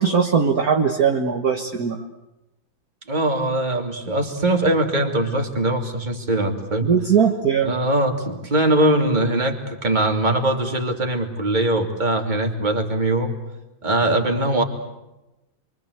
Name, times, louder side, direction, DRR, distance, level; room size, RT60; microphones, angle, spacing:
voice 1, 0.0-2.0 6.8-7.8, right 6 dB, 50° right, 3 dB, 1.8 m, -20 dB
voice 2, 3.1-6.9 7.6-13.3 13.8-14.6, right 1 dB, 20° right, 3 dB, 2.9 m, -21 dB
28.5 x 24.0 x 8.1 m, 0.97 s
omnidirectional pair, 2.2 m